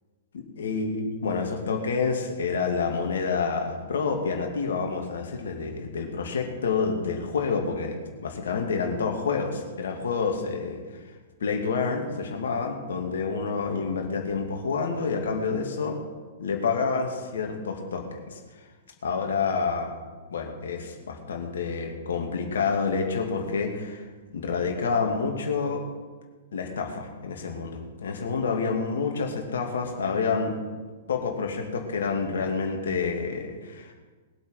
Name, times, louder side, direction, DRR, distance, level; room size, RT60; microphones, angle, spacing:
voice 1, 0.3-10.8 11.4-16.0 16.4-18.4 19.0-19.9 20.3-24.0 24.3-25.8 26.5-30.6 31.1-33.9, left 5 dB, 60° left, 2 dB, 2.6 m, -28 dB
20.5 x 7.9 x 5.7 m, 1.4 s
figure-of-eight pair, 105°, 0 cm